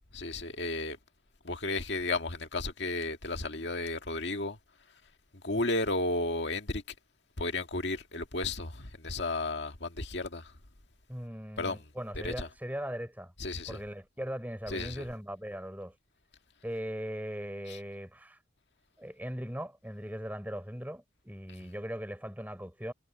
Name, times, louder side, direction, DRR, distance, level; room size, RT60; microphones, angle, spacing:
voice 1, 0.1-1.0 1.4-4.6 5.4-6.8 7.4-10.5 11.6-11.9 12.2-12.5 13.4-13.8 14.7-15.1 17.7-17.8 21.6-21.7, left 2 dB, 65° left, 1.9 m, -33 dB
voice 2, 11.1-13.3 13.7-15.9 16.6-18.4 19.0-22.9, equal, 10° right, 3.7 m, -39 dB
head